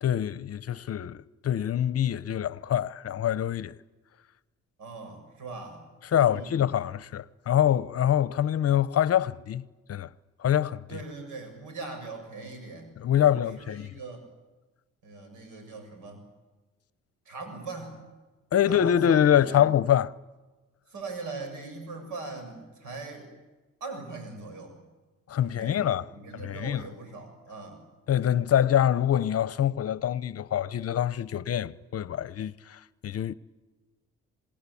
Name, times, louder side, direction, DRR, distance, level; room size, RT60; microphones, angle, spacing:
voice 1, 0.0-3.8 6.1-10.1 10.4-11.0 13.0-13.9 18.5-20.1 25.3-26.1 26.3-26.8 28.1-33.3, left 10 dB, 50° left, 0.9 m, -25 dB
voice 2, 4.8-5.8 6.2-6.6 10.9-12.9 13.2-14.2 15.0-16.2 17.3-18.0 18.6-19.6 20.9-23.3 23.8-24.8 25.4-27.8, right 3 dB, 85° right, 7.5 m, -41 dB
27.0 x 20.0 x 8.6 m
cardioid pair, 90°, 30 cm